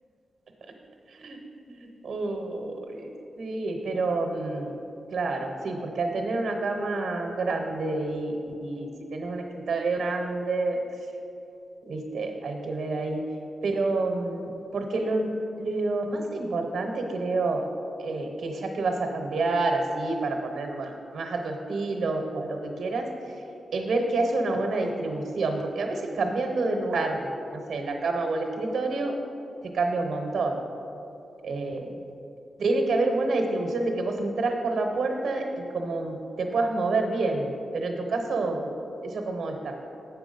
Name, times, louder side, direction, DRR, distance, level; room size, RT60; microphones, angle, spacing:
voice 1, 1.7-4.8 5.1-10.8 11.8-13.2 13.6-15.3 15.6-17.6 18.0-23.1 23.7-29.2 29.6-30.6 31.4-32.0 32.6-39.7, right 3 dB, 75° right, 3 dB, 0.9 m, -28 dB
7.1 x 6.0 x 5.3 m, 2.8 s
cardioid pair, 80°, 0 cm